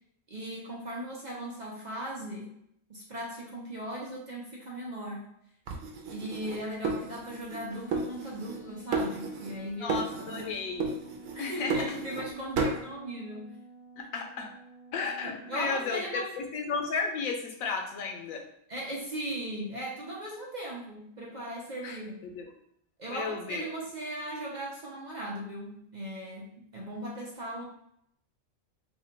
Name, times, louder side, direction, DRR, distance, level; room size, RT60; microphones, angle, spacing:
voice 1, 0.3-2.5 2.9-5.3 6.1-10.5 11.3-13.6 15.2-16.4 18.7-22.2 23.0-27.6, right 1 dB, 45° right, -4 dB, 0.7 m, -38 dB
sound 1, 5.7-7.6 7.9-8.6 8.9-9.6 9.9-10.5 10.8-12.3 12.6-12.8, right 3 dB, 75° right, 1.0 m, -33 dB
sound 2, 7.7-15.7, right 3 dB, 65° left, 1.3 m, -50 dB
voice 2, 9.8-10.9 11.4-12.0 12.6-12.7 14.0-14.5 14.9-18.4 21.8-22.5 23.1-23.7, left 4 dB, 90° left, 3 dB, 1.1 m, -34 dB
3.3 x 2.3 x 4.4 m, 0.73 s
omnidirectional pair, 1.4 m